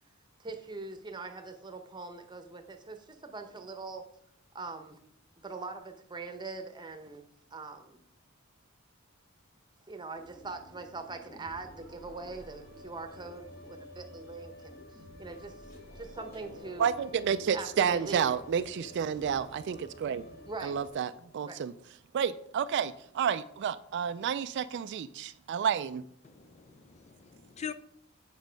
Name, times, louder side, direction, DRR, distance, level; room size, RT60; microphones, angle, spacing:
voice 1, 0.4-4.0 4.5-5.0 5.4-7.2 7.5-8.0 9.9-14.8 15.2-15.5 16.0-16.9 17.5-18.3 20.5-20.9 21.5-21.6, right 3 dB, 20° right, 0.9 m, -42 dB
sound 1, 10.1-20.9, left 1 dB, 50° left, 2.3 m, -50 dB
voice 2, 16.8-20.2 20.6-21.7 22.1-26.0, right 7 dB, 55° right, 0.3 m, -30 dB
voice 3, 26.2-27.7, left 8 dB, 30° left, 0.4 m, -43 dB
8.1 x 5.3 x 5.1 m
head